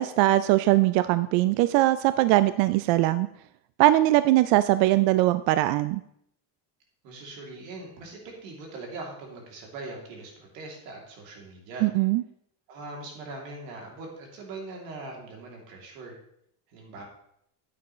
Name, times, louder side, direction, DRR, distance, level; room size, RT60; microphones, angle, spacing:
voice 1, 0.0-3.3 3.8-6.0 11.8-12.2, right 16 dB, 65° right, 14 dB, 0.5 m, -21 dB
voice 2, 7.0-11.9 12.7-16.1 16.7-17.0, right 2 dB, 85° right, -1 dB, 3.0 m, -41 dB
9.5 x 8.7 x 3.1 m, 0.72 s
supercardioid pair, 105°, 48 cm